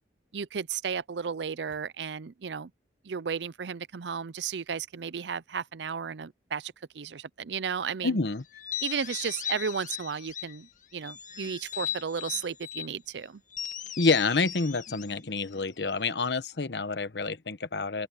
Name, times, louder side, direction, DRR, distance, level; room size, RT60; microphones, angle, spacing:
voice 1, 0.3-2.7 3.0-8.2 8.8-13.4, right 6 dB, 90° right, 0.6 m, -34 dB
voice 2, 8.0-8.4 14.0-18.1, left 3 dB, 75° left, 1.0 m, -28 dB
sound 1, 8.5-10.6 11.0-12.9 13.5-16.0, left 10 dB, 45° left, 1.8 m, -38 dB
open air
head